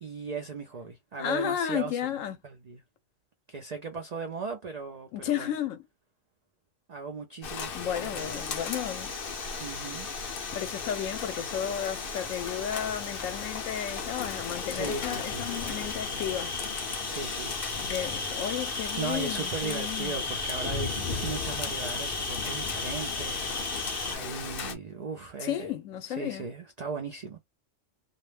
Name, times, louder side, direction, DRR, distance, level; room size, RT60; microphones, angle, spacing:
voice 1, 0.0-2.1 2.4-2.8 3.5-5.5 6.9-8.5 9.6-10.1 14.7-15.8 17.1-18.0 18.9-25.7 26.1-27.4, right 4 dB, 65° right, 0.4 m, -38 dB
voice 2, 1.2-2.4 5.1-5.8 7.7-9.1 10.5-16.5 17.9-20.2 25.4-26.5, left 10 dB, 80° left, 0.9 m, -33 dB
Rain, 7.4-24.7, left 6 dB, 60° left, 0.6 m, -36 dB
sound 1, 8.1-24.1, left 2 dB, 15° left, 0.6 m, -37 dB
2.4 x 2.1 x 3.2 m
omnidirectional pair, 1.3 m